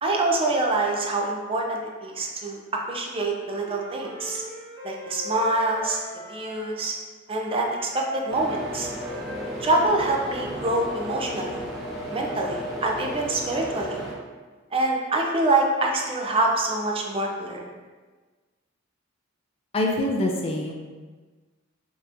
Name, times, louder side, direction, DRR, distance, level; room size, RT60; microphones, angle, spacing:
voice 1, 0.0-4.4 4.8-6.0 6.3-6.9 7.3-8.9 9.6-11.6 12.1-14.0 14.7-17.6, right 2 dB, 30° right, 0 dB, 0.5 m, -25 dB
Wind instrument woodwind instrument, 3.4-6.8 7.3-11.0, left 1 dB, 80° right, 0.8 m, -41 dB
sound 1, 8.3-14.1, right 1 dB, ahead, 0.9 m, -34 dB
voice 2, 19.7-20.7, left 1 dB, 30° left, 1 dB, 0.4 m, -24 dB
5.3 x 2.9 x 2.5 m, 1.4 s
head